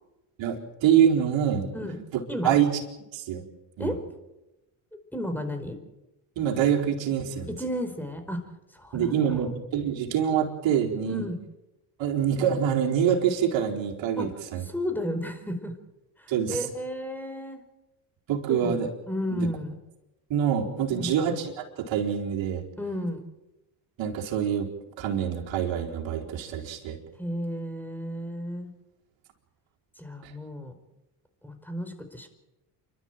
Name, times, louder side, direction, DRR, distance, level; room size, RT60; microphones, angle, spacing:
voice 1, 0.4-1.7 2.1-2.7 3.1-3.4 3.8-3.9 6.4-7.5 8.9-11.2 12.0-14.7 16.3-16.7 18.3-18.9 19.3-19.5 20.3-22.6 24.0-24.7 25.0-27.0 30.2-30.3, right 8 dB, 65° right, -1 dB, 4.5 m, -25 dB
voice 2, 5.1-5.8 7.5-8.4 8.7-9.4 11.1-11.4 14.2-14.3 14.6-15.7 16.2-17.6 18.5-19.7 20.9-21.2 22.8-23.2 27.2-28.7 30.0-30.7 31.4-32.3, equal, 5° left, 6 dB, 4.8 m, -33 dB
28.5 x 12.5 x 9.2 m, 0.98 s
supercardioid pair, 75°, 48 cm